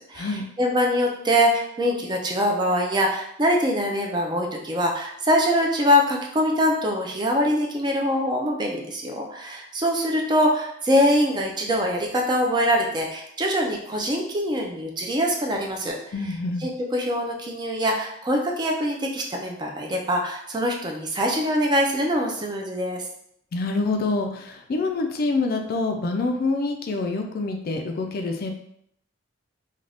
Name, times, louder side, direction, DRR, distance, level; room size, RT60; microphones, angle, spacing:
voice 1, 0.0-16.0 16.6-23.0, equal, 20° right, 1 dB, 0.4 m, -23 dB
voice 2, 16.1-16.7 23.5-28.5, left 3 dB, 50° left, 4 dB, 0.3 m, -26 dB
2.5 x 2.3 x 3.3 m, 0.70 s
head